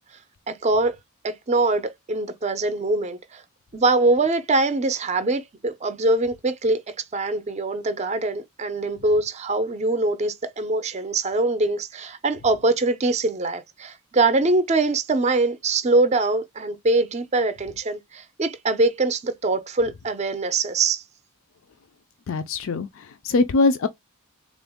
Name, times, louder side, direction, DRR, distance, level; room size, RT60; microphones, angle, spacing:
voice 1, 0.5-1.0 1.2-3.4 3.7-6.8 7.1-21.0, right 2 dB, 30° right, 0.5 m, -23 dB
voice 2, 22.3-23.9, left 3 dB, 60° left, 0.4 m, -22 dB
3.7 x 2.5 x 3.5 m
head